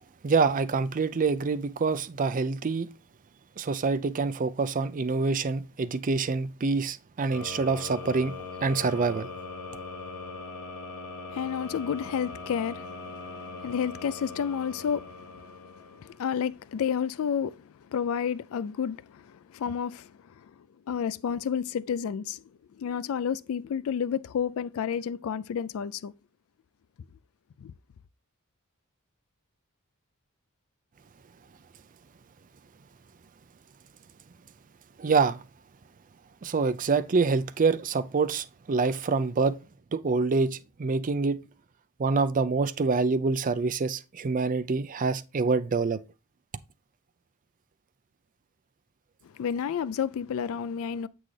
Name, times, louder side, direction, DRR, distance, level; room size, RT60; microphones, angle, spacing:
voice 1, 0.2-2.9 3.6-8.3 8.6-9.3 35.0-35.4 36.4-39.6 39.9-41.4 42.0-46.0, right 4 dB, 35° right, 0.5 m, -26 dB
sound 1, 7.3-16.2, left 3 dB, 90° left, 1.4 m, -41 dB
voice 2, 11.3-22.4 22.8-26.1 27.6-27.7 49.2-51.1, left 7 dB, 65° left, 0.3 m, -31 dB
7.4 x 6.2 x 3.3 m
head